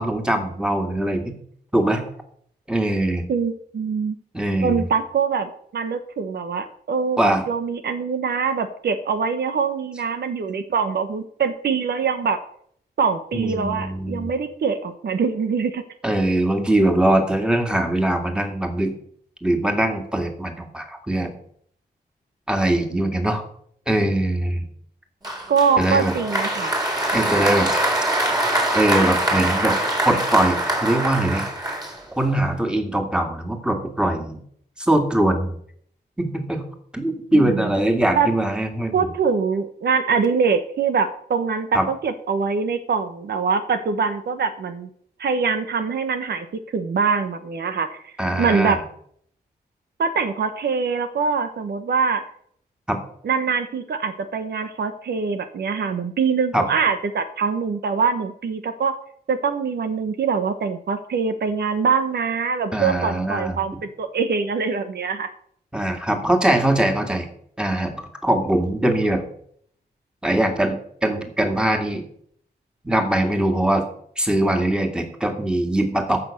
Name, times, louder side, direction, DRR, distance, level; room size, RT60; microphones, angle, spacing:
voice 1, 0.0-1.4 1.7-2.0 2.7-3.3 4.3-4.9 7.2-7.4 13.3-14.3 16.0-18.9 19.4-21.3 22.5-23.4 23.9-24.6 25.8-26.1 27.1-27.7 28.7-29.8 30.0-31.5 32.2-34.4 34.8-35.6 36.2-36.6 36.9-39.1 41.7-41.8 48.2-48.8 52.9-53.0 56.5-56.7 62.7-63.6 65.7-67.3 67.6-69.2 70.2-72.0 72.8-73.9 74.2-76.2, right 1 dB, 5° right, 4 dB, 2.3 m, -22 dB
voice 2, 3.3-4.2 4.6-12.4 13.0-15.8 25.5-26.7 37.3-37.7 38.1-38.3 38.9-44.9 45.2-46.5 46.7-48.8 50.0-52.2 53.2-58.9 59.3-65.3, right 5 dB, 75° right, 9 dB, 1.1 m, -23 dB
Applause, 25.2-32.4, right 1 dB, 20° right, 3.8 m, -23 dB
14.5 x 6.1 x 6.6 m, 0.66 s
wide cardioid pair, 95°, 17 cm